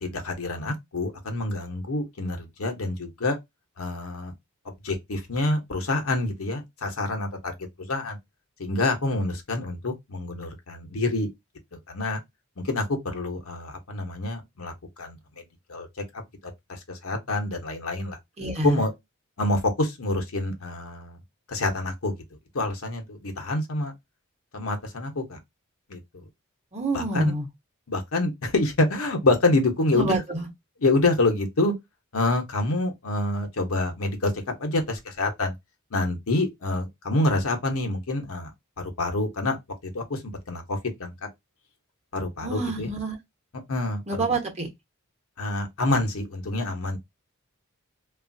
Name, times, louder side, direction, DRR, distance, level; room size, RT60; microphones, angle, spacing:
voice 1, 0.0-3.4 3.8-4.3 4.6-8.2 8.6-11.3 11.9-12.2 12.6-15.4 15.7-15.9 16.7-18.2 18.6-18.9 19.4-21.2 21.5-22.1 22.5-23.9 24.5-25.4 25.9-26.2 26.9-27.3 27.9-30.2 30.8-31.7 32.1-34.3 34.6-35.5 35.9-38.5 38.8-39.6 39.8-41.1 42.1-42.9 43.7-44.0 45.4-47.0, left 2 dB, 70° left, 0.9 m, -27 dB
voice 2, 18.4-18.8 26.7-27.5 29.9-30.5 42.4-43.2 44.1-44.7, right 2 dB, 30° right, 1.0 m, -27 dB
3.1 x 2.4 x 2.5 m
head